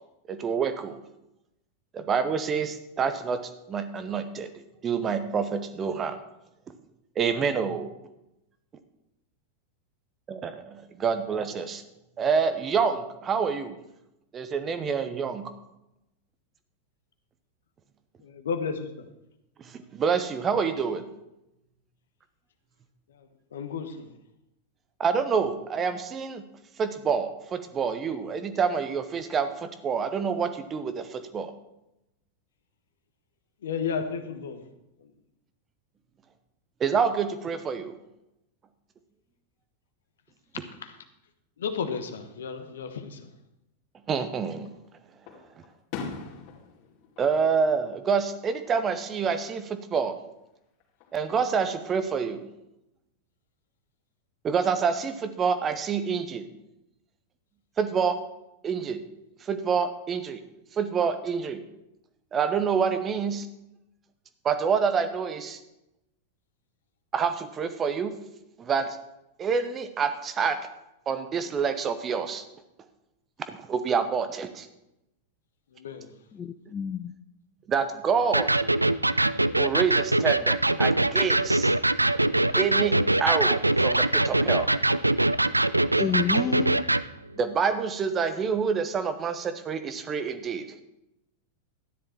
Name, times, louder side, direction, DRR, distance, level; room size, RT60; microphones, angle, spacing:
voice 1, 0.3-1.0 1.9-3.4 3.7-4.5 4.8-6.2 7.2-7.9 10.3-11.8 12.2-13.7 14.3-15.5 19.6-21.1 25.0-26.4 26.8-31.5 36.8-38.0 44.1-44.7 47.2-50.2 51.1-52.4 54.4-56.4 57.8-58.2 58.6-59.0 59.4-60.4 60.7-61.6 62.3-63.5 64.4-65.6 67.1-68.2 68.6-69.0 69.4-70.6 71.1-72.4 73.5-74.7 77.7-78.5 79.6-81.7 82.5-82.9 83.2-84.7 87.3-90.8, right 6 dB, 25° right, 10 dB, 1.0 m, -27 dB
voice 2, 18.2-19.1 23.1-24.1 33.6-34.7 35.0-35.1 40.8-40.9 41.6-43.3 75.7-76.1 86.3-86.7, left 6 dB, 65° left, 8 dB, 1.2 m, -33 dB
Fireworks, 44.1-44.8 45.3-48.4 48.7-49.3 50.8-51.6, left 5 dB, 45° left, 2.5 m, -42 dB
voice 3, 76.4-77.1 86.0-86.8, left 7 dB, 20° left, 8 dB, 0.5 m, -29 dB
Electric guitar, 78.3-87.1, right 2 dB, 85° right, 0.3 m, -23 dB
12.5 x 10.0 x 4.4 m, 0.89 s
figure-of-eight pair, 90°, 0 cm